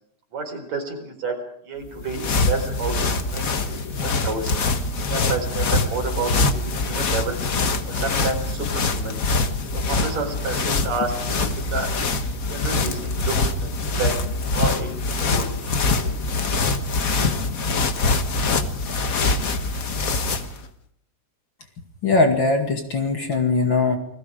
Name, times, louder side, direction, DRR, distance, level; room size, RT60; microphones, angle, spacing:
voice 1, 0.3-1.4 1.6-2.9 3.2-4.6 5.1-7.4 7.8-9.2 9.7-11.9 12.3-14.1 14.5-15.8, right 3 dB, 55° right, 3 dB, 5.8 m, -30 dB
sound 1, 1.8-20.6, left 3 dB, 60° left, 0.8 m, -24 dB
voice 2, 22.0-24.0, left 3 dB, 40° left, 4 dB, 2.5 m, -20 dB
29.5 x 20.5 x 5.1 m, 0.68 s
omnidirectional pair, 3.7 m